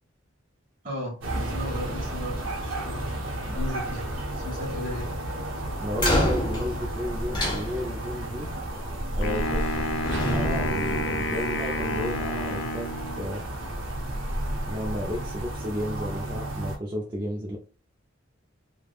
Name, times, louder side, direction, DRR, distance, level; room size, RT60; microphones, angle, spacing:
voice 1, 0.8-4.1 4.3-5.2, left 1 dB, 40° right, -2 dB, 1.2 m, -36 dB
sound 1, 1.2-16.8, right 1 dB, 75° right, 0.7 m, -32 dB
voice 2, 5.8-8.5 9.2-9.8 10.3-13.5 14.7-17.6, equal, 25° right, -1 dB, 0.4 m, -33 dB
sound 2, 5.9-8.2 9.4-9.7 10.0-11.8, equal, 20° left, 0.7 m, -28 dB
Wind instrument woodwind instrument, 9.2-13.4, left 1 dB, 60° left, 0.3 m, -30 dB
3.2 x 2.0 x 2.3 m, 0.35 s
head